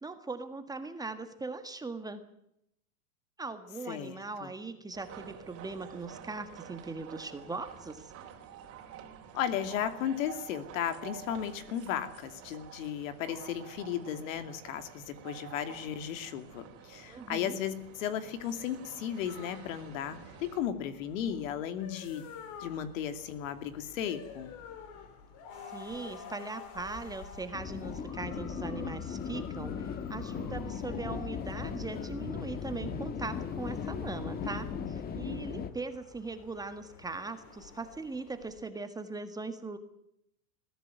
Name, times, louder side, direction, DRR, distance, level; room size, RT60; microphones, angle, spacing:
voice 1, 0.0-2.2 3.4-8.1 17.1-17.6 25.7-39.8, right 3 dB, 10° right, 8 dB, 1.6 m, -40 dB
voice 2, 3.9-4.5 9.3-22.3 22.6-24.5, left 9 dB, 60° left, 10 dB, 2.7 m, -35 dB
sound 1, 4.9-20.6, right 8 dB, 30° right, 3.8 m, -49 dB
sound 2, 19.3-38.6, left 6 dB, 40° left, 4.4 m, -50 dB
sound 3, 27.5-35.7, left 6 dB, 20° left, 1.4 m, -37 dB
21.0 x 15.0 x 9.4 m, 0.77 s
supercardioid pair, 135°, 44 cm